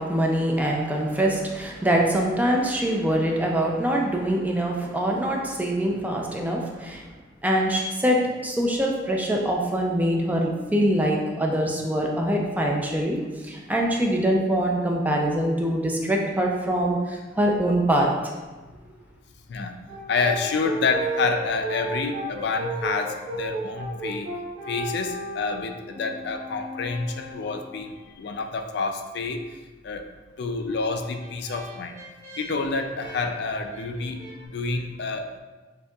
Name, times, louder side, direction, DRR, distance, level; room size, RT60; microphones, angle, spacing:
voice 1, 0.0-7.0 7.4-18.1, right 1 dB, 10° right, 0 dB, 0.4 m, -24 dB
Brass instrument, 19.9-28.2 30.7-34.4, right 2 dB, 40° right, 1.2 m, -35 dB
voice 2, 20.1-24.3 24.7-29.4 29.8-30.1 30.4-31.9 32.4-35.4, left 4 dB, 65° left, 5 dB, 0.4 m, -28 dB
6.7 x 2.8 x 2.3 m, 1.2 s
head